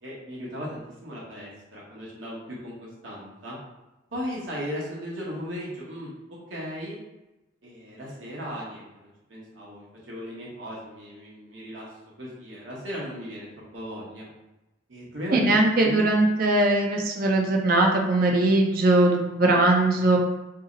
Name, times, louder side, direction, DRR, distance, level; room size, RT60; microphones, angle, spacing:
voice 1, 0.0-3.6 4.1-6.1 6.5-7.0 7.6-11.9 12.2-14.3 14.9-16.1, equal, 80° right, -6 dB, 1.0 m, -37 dB
voice 2, 15.3-20.2, right 2 dB, 50° right, 1 dB, 0.5 m, -20 dB
2.7 x 2.0 x 3.7 m, 0.98 s
head